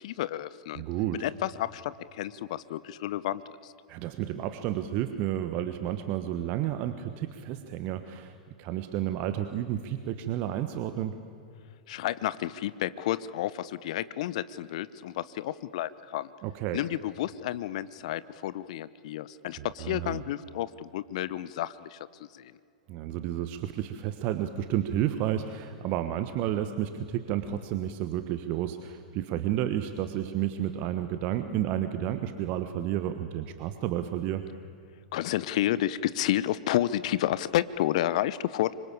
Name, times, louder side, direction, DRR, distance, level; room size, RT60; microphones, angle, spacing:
voice 1, 0.0-0.8 1.2-3.7 11.9-16.3 16.7-22.5 35.1-38.7, left 13 dB, 55° left, 17 dB, 0.8 m, -31 dB
voice 2, 0.7-1.2 3.9-11.2 16.4-16.8 19.6-20.2 22.9-34.4, right 11 dB, 40° right, 10 dB, 1.3 m, -31 dB
26.0 x 25.0 x 8.6 m, 2.4 s
figure-of-eight pair, 100°, 4 cm